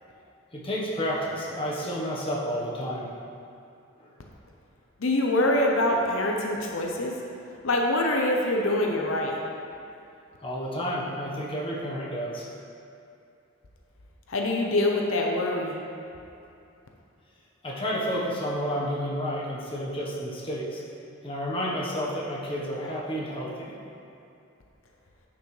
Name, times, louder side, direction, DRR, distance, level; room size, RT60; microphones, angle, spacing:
voice 1, 0.5-3.1 4.0-4.1 10.4-12.5 17.6-20.8 21.2-23.8, equal, 25° left, -5 dB, 1.2 m, -31 dB
voice 2, 5.0-7.1 7.6-9.3 14.3-15.7, left 1 dB, 80° left, 0 dB, 0.7 m, -24 dB
9.9 x 5.9 x 3.3 m, 2.6 s
head